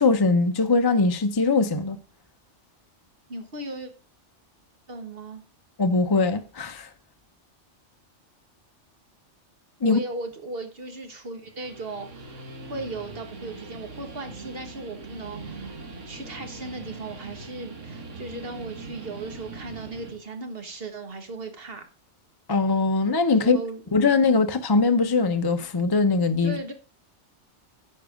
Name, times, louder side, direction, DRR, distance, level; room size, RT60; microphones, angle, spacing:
voice 1, 0.0-2.0 5.8-6.9 9.8-10.0 22.5-23.6 23.9-26.6, left 3 dB, 30° left, 0.5 m, -21 dB
voice 2, 3.3-3.9 4.9-5.4 9.8-15.8 16.0-21.8 23.4-24.0 26.4-26.7, right 2 dB, 55° right, 1.6 m, -37 dB
Guitar, 11.4-20.2, right 3 dB, 90° right, 1.7 m, -41 dB
9.8 x 5.3 x 5.0 m
omnidirectional pair, 1.2 m